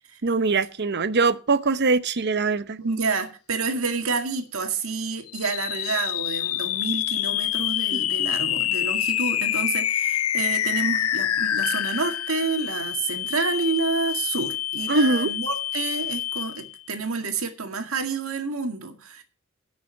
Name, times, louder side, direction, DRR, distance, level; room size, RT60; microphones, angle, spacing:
voice 1, 0.2-2.8 7.9-8.0 14.9-15.3, right 3 dB, 50° right, 0.8 m, -22 dB
voice 2, 2.8-19.2, right 4 dB, 75° right, 2.0 m, -29 dB
sound 1, 5.3-16.8, left 12 dB, 85° left, 0.5 m, -27 dB
9.3 x 6.4 x 8.7 m
head